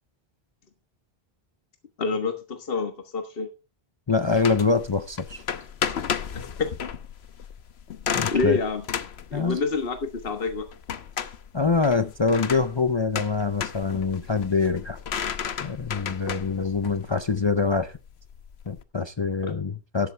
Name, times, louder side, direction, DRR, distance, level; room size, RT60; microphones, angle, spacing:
voice 1, 2.0-3.5 6.3-6.9 8.3-8.8 9.3-10.6 19.4-19.5, left 4 dB, 65° left, 1.5 m, -27 dB
voice 2, 4.1-5.4 8.1-8.6 9.3-9.6 11.5-15.0 15.6-18.0 18.7-20.1, left 4 dB, 35° left, 0.6 m, -25 dB
sound 1, 4.3-18.8, left 7 dB, 90° left, 1.1 m, -34 dB
13.0 x 11.0 x 3.4 m
omnidirectional pair, 1.0 m